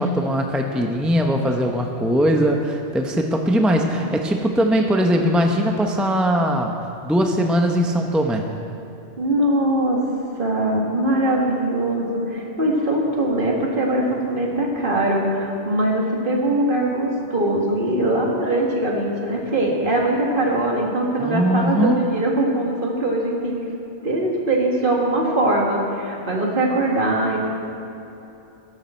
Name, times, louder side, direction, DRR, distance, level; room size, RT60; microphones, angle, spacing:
voice 1, 0.0-6.7 7.0-8.5 21.2-22.0, equal, ahead, 2 dB, 0.8 m, -20 dB
voice 2, 9.2-10.0 10.4-23.6 24.0-27.5, right 1 dB, 50° right, -1 dB, 2.2 m, -21 dB
20.0 x 11.0 x 4.4 m, 2.9 s
omnidirectional pair, 1.2 m